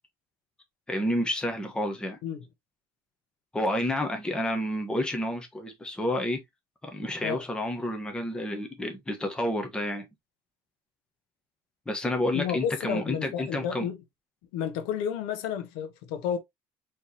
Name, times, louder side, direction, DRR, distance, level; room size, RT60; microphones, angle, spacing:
voice 1, 0.9-2.2 3.5-6.4 6.8-10.1 11.9-13.9, left 1 dB, 10° left, 1.2 m, -30 dB
voice 2, 12.3-14.0 14.5-16.4, left 8 dB, 85° left, 1.0 m, -31 dB
4.3 x 3.3 x 2.8 m
cardioid pair, 110°, 8 cm